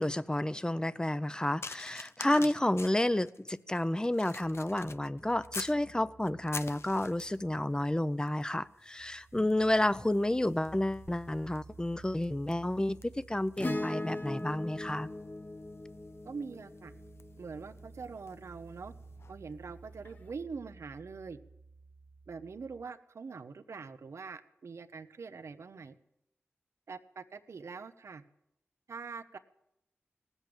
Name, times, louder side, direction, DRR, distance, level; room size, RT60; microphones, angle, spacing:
voice 1, 0.0-15.1, left 1 dB, 15° left, 0.6 m, -30 dB
sound 1, 1.6-5.8 6.3-7.5 8.3-8.5 8.8-18.5 19.2-19.3, left 4 dB, 70° left, 0.7 m, -48 dB
sound 2, 4.4-22.9, right 3 dB, 40° right, 0.8 m, -55 dB
Acoustic guitar / Strum, 13.6-18.2 20.1-20.2, left 2 dB, 40° left, 1.3 m, -39 dB
voice 2, 16.2-16.9 17.4-18.9 19.3-21.4 22.3-26.0 26.9-28.2 28.9-29.4, right 5 dB, 90° right, 0.8 m, -44 dB
18.0 x 8.1 x 8.8 m
cardioid pair, 45°, 5 cm